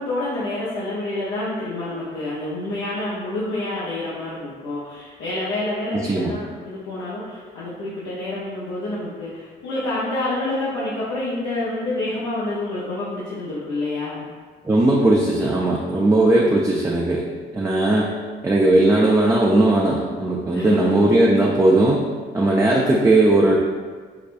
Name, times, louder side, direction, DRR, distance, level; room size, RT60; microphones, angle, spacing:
voice 1, 0.0-14.3 20.5-21.0 21.3-21.7, left 2 dB, 90° left, -9 dB, 0.7 m, -28 dB
voice 2, 5.9-6.3 14.6-17.2 17.5-18.1 18.4-22.0 22.3-23.6, right 2 dB, 15° right, -3 dB, 0.4 m, -18 dB
4.7 x 2.2 x 2.5 m, 1.5 s
cardioid pair, 90°, 20 cm